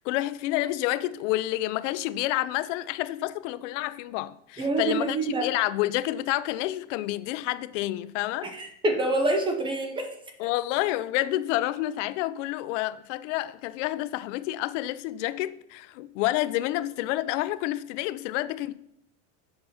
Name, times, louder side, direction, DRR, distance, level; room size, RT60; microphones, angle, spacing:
voice 1, 0.0-8.5 10.4-18.7, left 16 dB, 70° left, 0.5 m, -29 dB
voice 2, 4.6-5.5 8.4-10.1, right 2 dB, 15° right, 0.8 m, -26 dB
7.8 x 5.5 x 5.7 m
cardioid pair, 175°, 38 cm